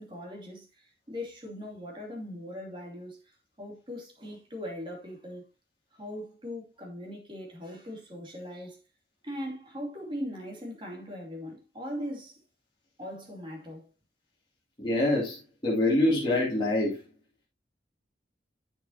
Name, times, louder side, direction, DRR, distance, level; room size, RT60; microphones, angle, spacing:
voice 1, 0.0-5.4 5.9-8.8 9.2-12.4 13.0-13.9, equal, 25° right, 2.6 m, -40 dB
voice 2, 14.8-17.0, left 1 dB, 25° left, 2.6 m, -25 dB
9.6 x 7.0 x 2.8 m
head